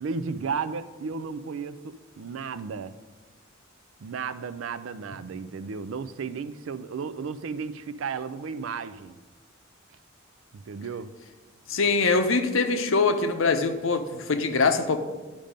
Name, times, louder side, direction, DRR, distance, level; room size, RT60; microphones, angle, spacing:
voice 1, 0.0-3.0 4.0-9.2 10.5-11.1, right 5 dB, 75° right, 13 dB, 0.4 m, -34 dB
voice 2, 11.7-15.0, left 4 dB, 75° left, 8 dB, 0.7 m, -23 dB
10.5 x 5.3 x 5.2 m, 1.3 s
head